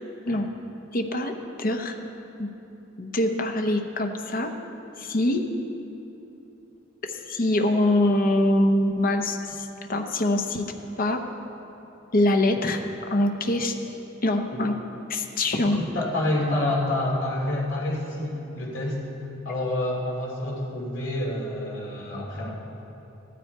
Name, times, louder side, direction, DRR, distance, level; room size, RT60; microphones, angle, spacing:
voice 1, 0.9-1.3 1.6-2.0 2.4-2.5 3.0-4.5 5.0-5.4 7.0-10.7 11.0-11.2 12.1-12.8 13.1-13.7 14.2-14.7 15.1-15.8, left 1 dB, 45° left, 4 dB, 0.8 m, -24 dB
voice 2, 15.6-19.0 19.4-22.7, left 1 dB, 70° left, -3 dB, 2.6 m, -28 dB
14.5 x 10.0 x 4.6 m, 3.0 s
head